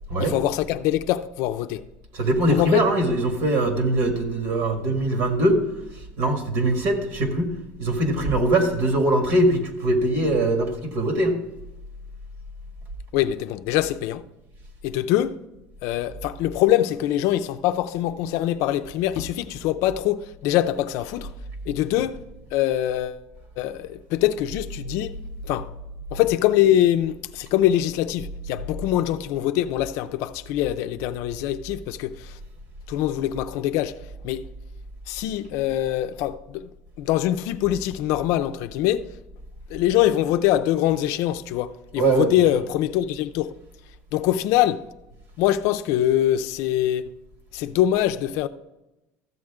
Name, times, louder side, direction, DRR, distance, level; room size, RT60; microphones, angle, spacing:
voice 1, 0.2-1.8 2.5-2.9 13.1-14.2 14.8-15.4 15.8-21.3 21.7-22.2 22.5-23.2 23.6-25.2 25.5-25.7 26.1-32.3 32.9-33.9 34.2-34.4 35.1-36.7 37.0-39.1 39.7-43.5 44.1-44.8 45.4-47.1 47.5-48.5, left 12 dB, 65° left, 0.5 m, -23 dB
voice 2, 2.1-5.6 6.2-7.5 7.8-11.4 42.0-42.3, right 1 dB, 60° right, 1.8 m, -22 dB
13.5 x 7.7 x 3.6 m
cardioid pair, 150°, 5 cm